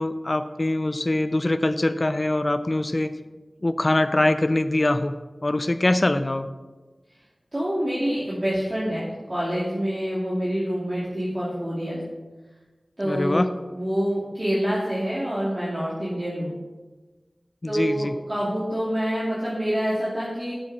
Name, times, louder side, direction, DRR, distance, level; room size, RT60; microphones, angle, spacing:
voice 1, 0.0-3.1 3.6-5.1 5.4-6.5 13.0-13.5 17.6-18.1, left 1 dB, 45° left, 11 dB, 0.6 m, -23 dB
voice 2, 7.5-12.0 13.0-13.4 13.7-16.5 17.7-20.5, equal, 35° right, -8 dB, 2.7 m, -26 dB
12.5 x 7.7 x 4.2 m, 1.2 s
wide cardioid pair, 55°, 0 cm